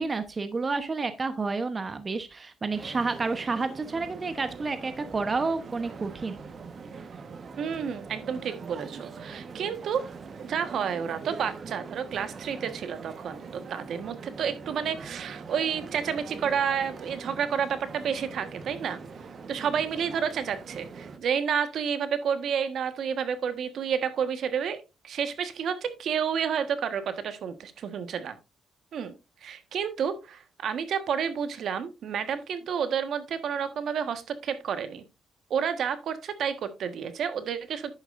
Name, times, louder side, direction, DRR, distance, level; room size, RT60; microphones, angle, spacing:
voice 1, 0.0-6.4, right 4 dB, 30° right, 10 dB, 0.9 m, -30 dB
sound 1, 2.7-21.2, right 5 dB, 50° right, 1.3 m, -42 dB
voice 2, 7.6-10.1 10.4-19.0 19.5-24.8 25.0-28.4 28.9-29.1 29.4-35.0 35.5-37.9, right 7 dB, 65° right, 10 dB, 1.4 m, -30 dB
10.5 x 8.6 x 2.6 m, 0.26 s
cardioid pair, 90°, 0 cm